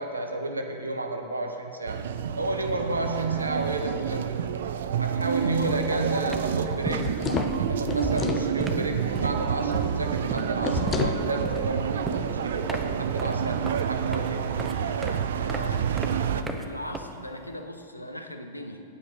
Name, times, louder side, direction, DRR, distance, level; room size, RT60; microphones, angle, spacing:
voice 1, 0.0-2.0 2.4-4.3 5.0-7.2 7.6-14.6, right 2 dB, 80° right, 5 dB, 1.0 m, -31 dB
sound 1, 1.9-16.4, right 8 dB, 60° right, 0.5 m, -29 dB
sound 2, 6.3-17.6, right 2 dB, 10° right, 0.8 m, -37 dB
sound 3, 6.8-8.5 10.6-11.2, left 6 dB, 25° left, 0.6 m, -30 dB
voice 2, 14.5-15.8 16.1-18.8, left 1 dB, 85° left, 6 dB, 0.8 m, -39 dB
9.5 x 8.7 x 5.3 m, 2.4 s
figure-of-eight pair, 90°, 0 cm